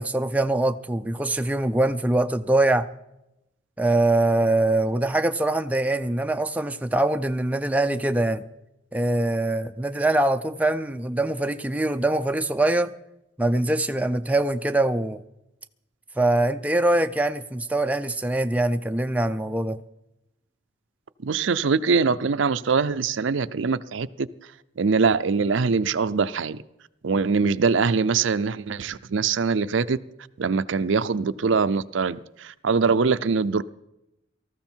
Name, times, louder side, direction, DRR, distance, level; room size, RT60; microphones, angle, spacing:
voice 1, 0.0-2.9 3.8-8.4 8.9-12.9 13.4-15.2 16.2-19.8, right 2 dB, 5° right, 0.5 m, -23 dB
voice 2, 21.2-24.3 24.8-26.6 27.0-30.0 30.4-33.6, right 5 dB, 70° right, 0.5 m, -23 dB
18.5 x 14.0 x 4.5 m
head